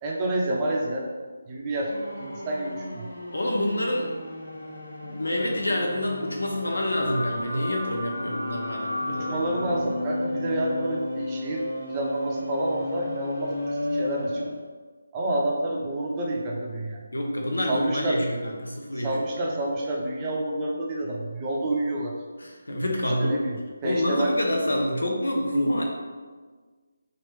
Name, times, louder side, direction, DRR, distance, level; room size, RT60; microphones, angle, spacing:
voice 1, 0.0-1.1 1.5-1.9 2.2-3.1 9.1-11.6 11.9-14.6 15.1-17.0 17.7-18.2 18.9-22.2 23.2-24.3, right 1 dB, 20° right, -3 dB, 0.5 m, -29 dB
sound 1, 1.9-14.6, left 1 dB, 60° left, 1.0 m, -33 dB
voice 2, 3.3-4.1 5.0-9.4 17.1-19.1 22.4-23.4 23.8-25.8, left 1 dB, 85° left, 1 dB, 0.7 m, -27 dB
3.1 x 2.4 x 3.1 m, 1.4 s
figure-of-eight pair, 160°, 0 cm